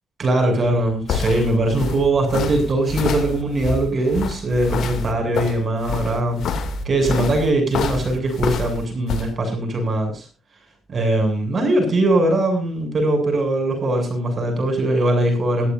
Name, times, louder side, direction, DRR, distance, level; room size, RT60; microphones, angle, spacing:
voice 1, 0.2-10.3 10.9-15.7, right 1 dB, 40° right, 4 dB, 7.8 m, -21 dB
sound 1, 0.6-9.3, left 4 dB, 70° left, 2.6 m, -27 dB
20.5 x 14.5 x 2.7 m, 0.30 s
cardioid pair, 90°, 0 cm